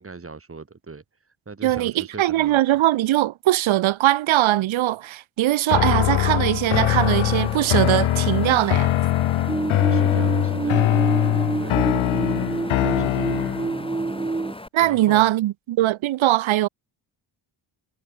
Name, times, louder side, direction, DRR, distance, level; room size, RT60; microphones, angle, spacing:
voice 1, 0.0-2.8 9.3-11.1 11.6-11.8 12.7-13.5 14.8-15.3, right 4 dB, 30° right, 2.5 m, -40 dB
voice 2, 1.6-8.9 14.7-16.7, right 14 dB, 80° right, 0.8 m, -21 dB
sound 1, 5.7-13.8, left 14 dB, 85° left, 1.0 m, -22 dB
Wind, 6.9-14.7, left 2 dB, 10° left, 2.2 m, -39 dB
sound 2, 9.5-14.5, right 3 dB, 10° right, 0.6 m, -27 dB
cardioid pair, 80°, 48 cm